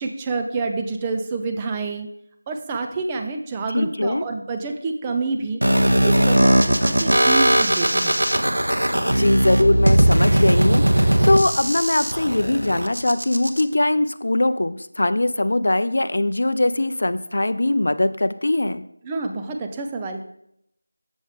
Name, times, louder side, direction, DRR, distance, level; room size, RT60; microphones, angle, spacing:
voice 1, 0.0-2.1 2.5-5.6 6.0-8.2 19.0-20.2, right 3 dB, 10° right, 4 dB, 0.4 m, -27 dB
voice 2, 3.7-4.2 9.0-18.8, left 1 dB, 60° left, 11 dB, 0.5 m, -21 dB
sound 1, 5.6-13.6, right 1 dB, 85° right, 0.9 m, -18 dB
7.2 x 6.8 x 3.6 m, 0.74 s
figure-of-eight pair, 175°, 0 cm